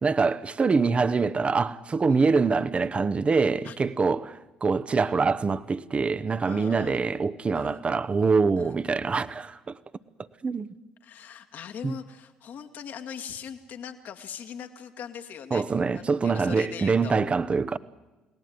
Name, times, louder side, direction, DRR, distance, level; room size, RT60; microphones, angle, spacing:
voice 1, 0.0-9.8 10.4-10.7 11.8-11.9 15.5-17.8, right 4 dB, 35° right, 1.1 m, -24 dB
voice 2, 6.5-7.0 7.5-7.8 8.6-8.8 11.0-15.6 15.9-17.2, left 8 dB, 65° left, 2.3 m, -41 dB
29.5 x 18.0 x 9.5 m
hypercardioid pair, 55°, 3 cm